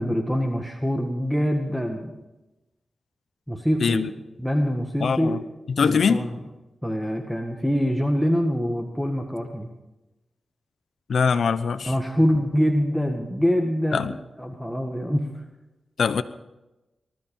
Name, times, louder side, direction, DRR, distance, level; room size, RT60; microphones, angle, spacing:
voice 1, 0.0-2.2 3.5-4.1 4.4-5.4 5.8-6.4 6.8-9.7 11.8-15.3, equal, ahead, 2 dB, 1.8 m, -24 dB
voice 2, 3.8-4.1 5.0-5.4 5.8-6.2 11.1-11.9 13.9-14.1 16.0-16.2, left 6 dB, 75° left, 12 dB, 0.7 m, -22 dB
19.5 x 13.0 x 5.4 m, 1.0 s
cardioid pair, 65°, 0 cm